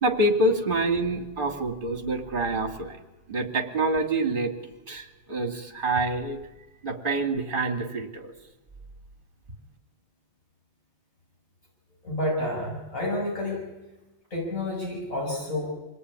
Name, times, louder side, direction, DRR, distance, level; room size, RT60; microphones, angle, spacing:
voice 1, 0.0-2.9 3.3-4.5 4.9-6.4 6.8-8.3, right 2 dB, 25° right, 4 dB, 2.9 m, -26 dB
voice 2, 12.0-13.7 14.3-15.7, left 1 dB, 40° left, -4 dB, 7.3 m, -29 dB
26.5 x 19.5 x 9.9 m, 1.1 s
omnidirectional pair, 2.2 m